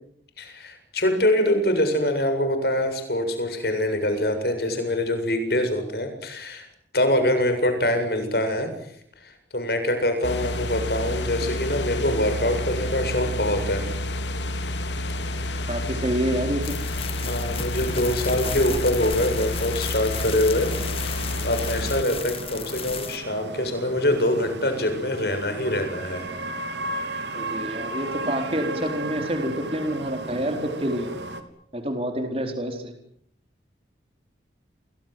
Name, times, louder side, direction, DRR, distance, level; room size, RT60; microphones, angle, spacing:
voice 1, 0.4-6.7 6.9-8.7 9.2-13.8 17.2-20.7 21.1-26.3, left 1 dB, 60° left, 7 dB, 7.5 m, -24 dB
sound 1, 10.2-22.0, left 1 dB, 80° left, 3.1 m, -29 dB
voice 2, 15.7-16.7 27.3-31.1 31.7-32.9, equal, 30° right, 5 dB, 4.3 m, -27 dB
sound 2, 16.6-23.2, left 6 dB, 30° left, 2.3 m, -34 dB
sound 3, 20.6-31.4, right 2 dB, 80° right, 3.5 m, -35 dB
30.0 x 23.0 x 7.9 m, 0.69 s
head